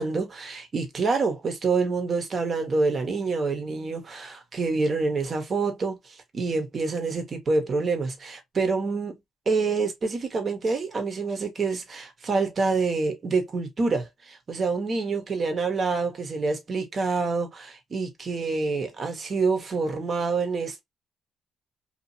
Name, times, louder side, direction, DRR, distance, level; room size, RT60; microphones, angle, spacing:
voice 1, 0.0-9.2 9.5-20.8, right 4 dB, 45° right, 0.9 m, -27 dB
2.7 x 2.5 x 2.5 m
cardioid pair, 90°, 0 cm